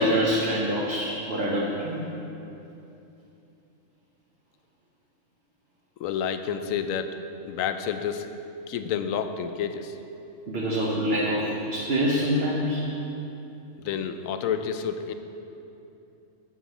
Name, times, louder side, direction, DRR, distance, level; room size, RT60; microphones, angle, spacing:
voice 1, 0.0-2.0 10.5-12.8, equal, 55° right, -4 dB, 1.1 m, -25 dB
voice 2, 6.0-7.2 7.4-8.3 8.7-10.0 13.8-15.1, left 7 dB, 85° left, 9 dB, 1.0 m, -29 dB
7.3 x 6.3 x 7.0 m, 2.9 s
omnidirectional pair, 1.3 m